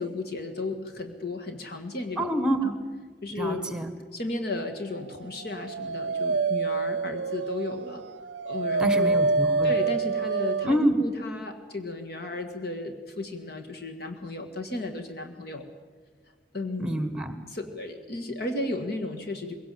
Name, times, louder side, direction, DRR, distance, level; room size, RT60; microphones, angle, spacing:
voice 1, 0.0-2.2 2.6-2.7 3.2-3.7 4.1-8.0 8.4-9.1 9.6-15.7 16.5-16.9 17.5-19.5, left 2 dB, 60° left, 5 dB, 1.8 m, -34 dB
voice 2, 2.2-2.7 3.3-3.9 8.8-9.7 10.6-10.9 16.8-17.3, right 1 dB, 5° right, 9 dB, 1.6 m, -26 dB
Dog, 5.3-10.9, right 3 dB, 80° right, 0.5 m, -27 dB
21.5 x 17.5 x 7.7 m, 1.4 s
head